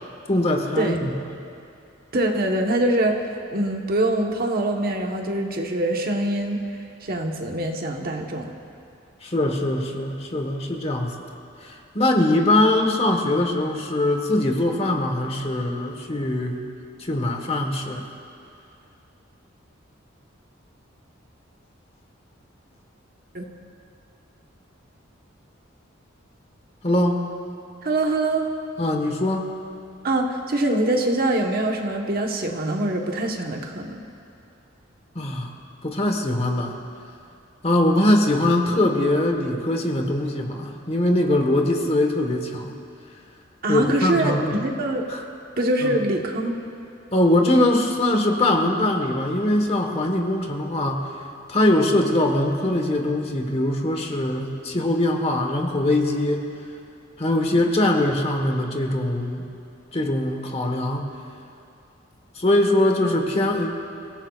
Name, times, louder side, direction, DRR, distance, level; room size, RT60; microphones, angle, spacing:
voice 1, 0.3-1.1 9.2-11.1 11.6-16.6 17.0-18.0 26.8-27.2 28.8-29.5 35.1-35.5 35.8-36.8 37.6-42.7 43.7-44.6 45.1-45.2 45.8-46.0 47.1-51.1 51.5-56.4 57.2-59.4 59.9-61.1 62.3-63.8, left 1 dB, 30° left, 3 dB, 1.3 m, -22 dB
voice 2, 2.1-6.6 7.0-8.5 23.3-23.5 27.8-28.5 30.0-34.1 43.6-45.1 45.6-46.6, right 1 dB, 50° right, 2 dB, 1.2 m, -24 dB
29.5 x 16.5 x 2.4 m, 2.5 s
head